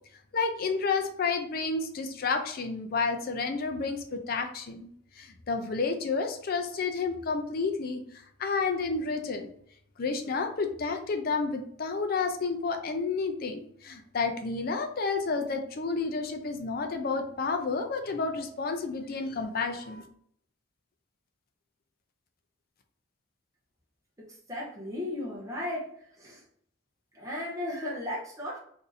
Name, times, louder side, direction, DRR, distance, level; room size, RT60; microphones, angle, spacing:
voice 1, 0.3-4.9 5.2-8.0 8.4-9.5 10.0-20.0, left 4 dB, 45° left, 5 dB, 0.4 m, -30 dB
voice 2, 24.2-25.9 26.2-26.4 27.1-28.6, left 1 dB, 15° right, -4 dB, 0.7 m, -35 dB
2.6 x 2.6 x 3.9 m, 0.66 s
head